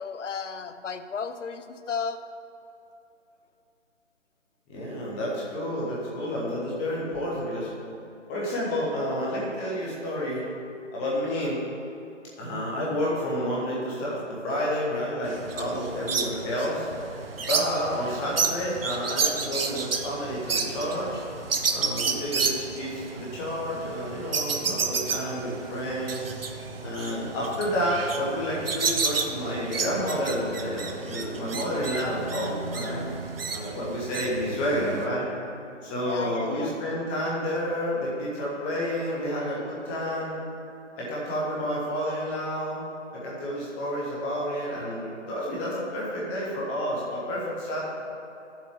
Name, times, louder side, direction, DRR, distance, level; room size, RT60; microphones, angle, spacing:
voice 1, 0.0-2.2 36.0-36.8, left 5 dB, 75° left, 10 dB, 0.7 m, -34 dB
voice 2, 4.7-7.7 8.3-10.4 10.9-11.6 12.4-16.9 17.5-21.2 21.7-26.3 26.8-33.1 33.5-35.3 35.8-40.4 41.0-42.8 43.2-47.8, equal, 10° left, -6 dB, 1.0 m, -30 dB
sound 1, 15.2-35.1, right 5 dB, 50° right, 0.7 m, -31 dB
11.0 x 7.3 x 3.5 m, 2.8 s
figure-of-eight pair, 155°, 37 cm